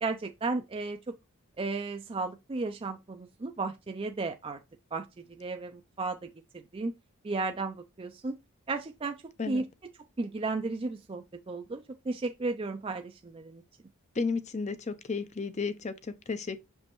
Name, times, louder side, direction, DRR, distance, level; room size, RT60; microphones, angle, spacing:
voice 1, 0.0-1.2 1.6-4.6 4.9-5.1 5.4-6.9 7.2-8.3 8.7-9.2 9.5-9.6 10.2-13.6, right 3 dB, 25° right, 0.4 m, -34 dB
voice 2, 14.1-16.6, left 4 dB, 30° left, 0.5 m, -33 dB
6.2 x 5.3 x 3.0 m
head